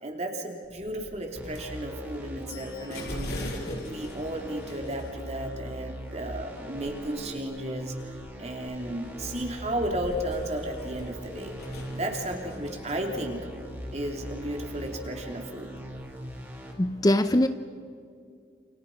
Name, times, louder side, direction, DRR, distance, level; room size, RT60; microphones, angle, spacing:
voice 1, 0.0-3.3 3.8-7.9 8.4-11.5 11.9-13.4 13.9-15.7, right 1 dB, 35° right, 2 dB, 3.4 m, -33 dB
sound 1, 0.6-16.0, left 1 dB, 60° left, 5.5 m, -44 dB
sound 2, 1.4-16.7, equal, 15° right, 4.5 m, -41 dB
voice 2, 16.8-17.5, left 1 dB, 20° left, 10 dB, 0.6 m, -21 dB
29.0 x 28.5 x 5.7 m, 2.4 s
head